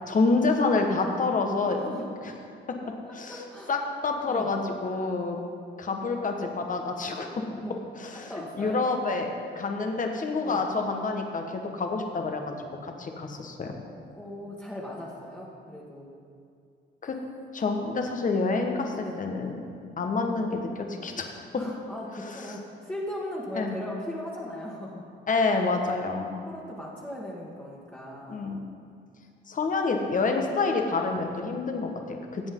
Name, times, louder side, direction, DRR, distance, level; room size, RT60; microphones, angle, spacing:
voice 1, 0.1-1.8 3.1-3.4 3.7-5.4 5.8-7.3 8.0-9.3 9.5-12.5 12.8-13.7 17.0-17.2 17.5-19.6 20.0-21.4 23.6-23.8 25.3-26.3 28.3-28.6 29.5-32.5, left 3 dB, 40° left, 3 dB, 1.4 m, -28 dB
voice 2, 1.8-2.2 3.1-3.7 4.3-4.5 7.6-7.8 8.1-8.9 10.4-10.6 14.1-16.1 19.0-19.2 21.6-25.0 26.5-28.5, left 1 dB, 10° left, -6 dB, 1.8 m, -38 dB
16.5 x 7.9 x 3.9 m, 2.4 s
cardioid pair, 90°, 20 cm